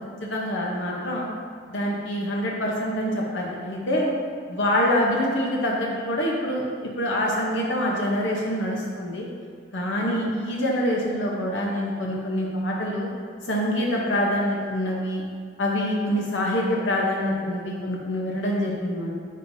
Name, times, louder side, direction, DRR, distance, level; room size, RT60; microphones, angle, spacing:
voice 1, 0.2-1.3 1.7-4.1 4.5-6.6 7.0-9.3 9.7-13.1 13.4-15.2 15.6-19.1, equal, 80° left, -3 dB, 0.8 m, -25 dB
8.3 x 6.4 x 2.7 m, 2.1 s
head